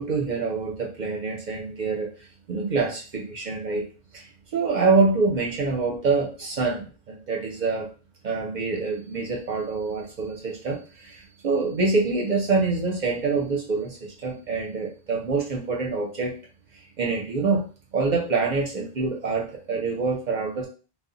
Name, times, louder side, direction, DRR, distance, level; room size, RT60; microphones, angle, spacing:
voice 1, 0.0-3.8 4.1-7.9 8.2-16.4 16.7-17.6 17.9-20.7, right 4 dB, 55° right, 0 dB, 0.6 m, -26 dB
2.1 x 2.1 x 3.7 m, 0.36 s
omnidirectional pair, 1.1 m